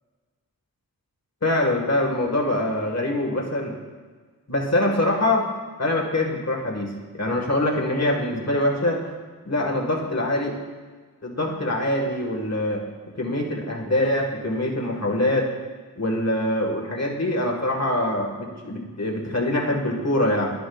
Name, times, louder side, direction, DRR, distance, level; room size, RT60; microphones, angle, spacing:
voice 1, 1.4-3.7 4.5-5.5 5.8-9.1 9.4-10.5 11.2-12.8 13.2-15.5 15.9-20.5, left 1 dB, 45° left, 0 dB, 1.6 m, -24 dB
11.5 x 10.0 x 2.4 m, 1.5 s
wide cardioid pair, 40°, 36 cm